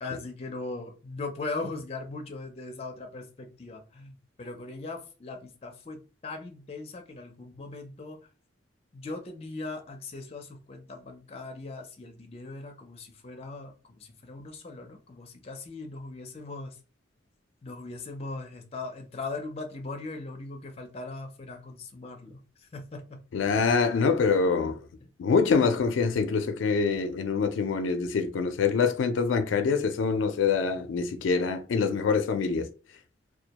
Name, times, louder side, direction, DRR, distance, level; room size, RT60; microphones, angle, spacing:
voice 1, 0.0-8.3 8.9-16.8 17.6-22.4 22.7-23.2, left 3 dB, 35° left, 0.5 m, -39 dB
voice 2, 23.3-24.9 25.2-32.7, left 5 dB, 90° left, 0.4 m, -25 dB
2.2 x 2.1 x 2.8 m
head